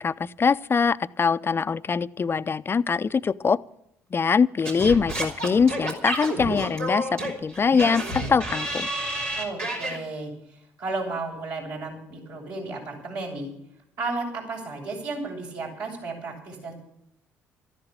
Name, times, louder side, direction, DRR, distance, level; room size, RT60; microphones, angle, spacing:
voice 1, 0.0-3.6 4.1-8.9, left 5 dB, 30° left, 15 dB, 0.6 m, -23 dB
Singing / Scratching (performance technique), 4.6-10.0, right 1 dB, 90° right, 3.7 m, -30 dB
voice 2, 9.4-13.5 14.0-16.7, right 3 dB, 65° right, -1 dB, 7.0 m, -33 dB
14.0 x 11.5 x 7.3 m, 0.76 s
hypercardioid pair, 55°, 7 cm